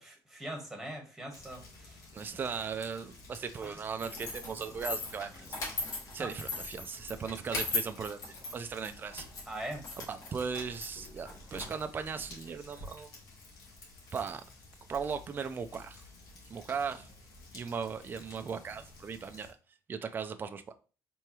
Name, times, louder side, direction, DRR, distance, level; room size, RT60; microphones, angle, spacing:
voice 1, 0.0-2.0 3.6-3.8 6.2-6.3 9.5-9.8, right 1 dB, 5° right, 1.4 m, -41 dB
sound 1, 1.3-19.5, left 2 dB, 90° left, 2.3 m, -53 dB
voice 2, 2.1-5.6 6.1-9.3 10.1-13.2 14.1-14.4 14.9-16.0 16.5-17.1 17.5-19.5 19.9-20.7, right 6 dB, 30° right, 0.4 m, -38 dB
sound 2, 4.0-12.8, left 3 dB, 60° left, 2.1 m, -39 dB
4.6 x 3.4 x 3.0 m
cardioid pair, 135°, 7 cm